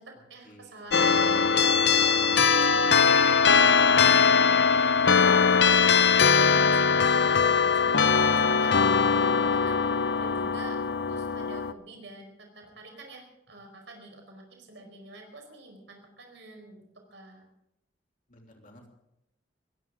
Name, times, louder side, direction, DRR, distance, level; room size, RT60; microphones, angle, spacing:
voice 1, 0.0-6.1 6.4-9.8 10.2-16.8 17.1-17.4, right 2 dB, 75° right, 2 dB, 4.8 m, -47 dB
sound 1, 0.9-11.7, left 5 dB, 60° left, 0.7 m, -21 dB
voice 2, 5.9-6.5 18.3-18.9, equal, 45° left, 1 dB, 3.2 m, -52 dB
21.0 x 17.5 x 3.8 m, 0.82 s
head